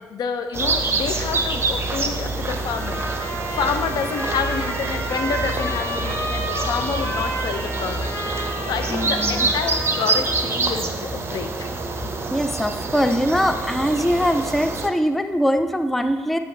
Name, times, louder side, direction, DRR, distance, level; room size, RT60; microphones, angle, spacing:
voice 1, 0.0-11.7 12.9-13.2, left 6 dB, 50° left, 8 dB, 0.5 m, -29 dB
sound 1, 0.5-14.9, right 3 dB, 30° right, 0.7 m, -26 dB
sound 2, 2.6-10.4, equal, 30° left, 1.9 m, -31 dB
voice 2, 8.9-9.5 12.3-16.4, equal, ahead, 8 dB, 0.4 m, -22 dB
7.8 x 3.1 x 5.5 m, 1.2 s
figure-of-eight pair, 45°, 9 cm